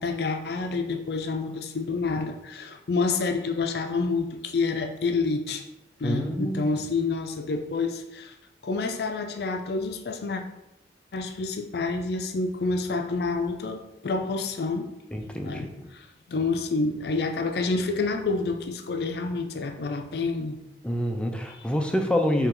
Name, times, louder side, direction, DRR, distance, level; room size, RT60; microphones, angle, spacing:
voice 1, 0.0-5.6 6.0-8.3 8.6-10.4 11.1-14.9 15.4-20.6, left 3 dB, 65° left, 6 dB, 0.5 m, -28 dB
voice 2, 6.0-6.7 15.1-15.9 20.8-22.5, equal, 5° left, 3 dB, 0.4 m, -27 dB
3.8 x 2.9 x 4.3 m, 0.88 s
head